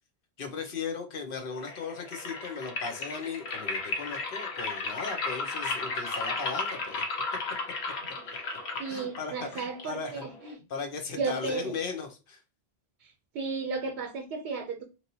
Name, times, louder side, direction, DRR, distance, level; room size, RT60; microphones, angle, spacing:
voice 1, 0.4-7.0 8.9-10.2 10.7-12.4, left 5 dB, 60° left, 0.9 m, -37 dB
sound 1, 1.5-10.6, left 3 dB, 85° left, 1.0 m, -34 dB
voice 2, 8.8-10.5 11.1-11.7 13.3-14.8, right 4 dB, 85° right, 0.9 m, -34 dB
3.1 x 2.7 x 2.6 m
omnidirectional pair, 1.1 m